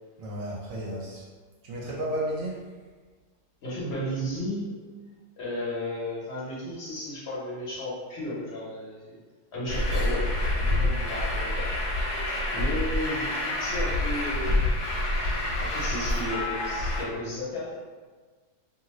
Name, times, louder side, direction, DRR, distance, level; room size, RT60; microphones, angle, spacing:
voice 1, 0.2-1.3 1.6-2.6, right 1 dB, 65° right, -4 dB, 1.0 m, -32 dB
voice 2, 3.6-4.7 5.4-9.2 9.5-11.7 12.1-14.7 15.6-17.8, left 1 dB, 50° left, -7 dB, 0.9 m, -34 dB
Truck, 9.7-17.0, left 1 dB, 85° left, 1.2 m, -27 dB
2.6 x 2.6 x 3.0 m, 1.4 s
omnidirectional pair, 1.7 m